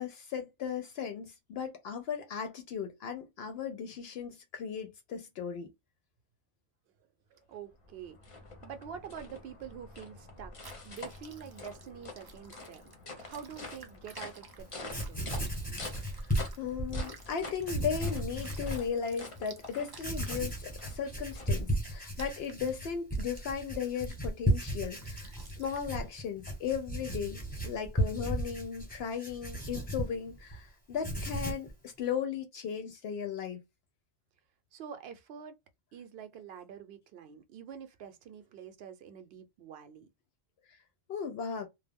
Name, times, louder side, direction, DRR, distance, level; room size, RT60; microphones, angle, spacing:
voice 1, 0.0-5.7 16.0-16.1 16.6-33.6 41.1-41.7, left 7 dB, 70° left, 0.8 m, -36 dB
voice 2, 7.3-8.3 8.6-10.5 10.8-12.8 13.2-15.2 34.7-35.5 35.9-40.1, right 8 dB, 70° right, 0.8 m, -46 dB
sound 1, 7.5-22.0, left 3 dB, 35° left, 0.6 m, -47 dB
sound 2, 10.6-16.6 16.9-20.6 21.2-21.6 22.1-22.8 23.1-23.6 24.0-24.2 24.7-26.0, right 3 dB, 40° right, 0.3 m, -53 dB
Writing, 14.6-14.7 14.9-17.1 17.6-18.9 19.4-19.5 20.0-30.6 30.9-31.7, equal, 10° left, 0.9 m, -35 dB
2.3 x 2.0 x 3.4 m
omnidirectional pair, 1.1 m